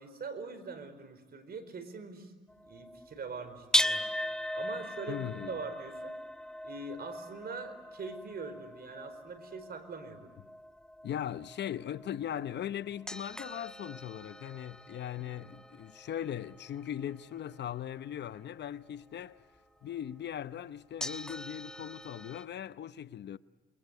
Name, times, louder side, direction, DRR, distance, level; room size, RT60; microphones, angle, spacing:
voice 1, 0.0-2.3 2.6-4.1 4.5-6.2 6.6-10.3 15.2-15.5, right 4 dB, 50° right, 4.7 m, -43 dB
sound 1, 2.5-18.7 19.6-19.7 21.0-22.4, equal, 5° left, 1.1 m, -39 dB
voice 2, 5.1-5.6 11.0-19.4 19.8-23.4, left 10 dB, 60° left, 0.8 m, -39 dB
28.5 x 23.0 x 8.2 m
cardioid pair, 90°, 20 cm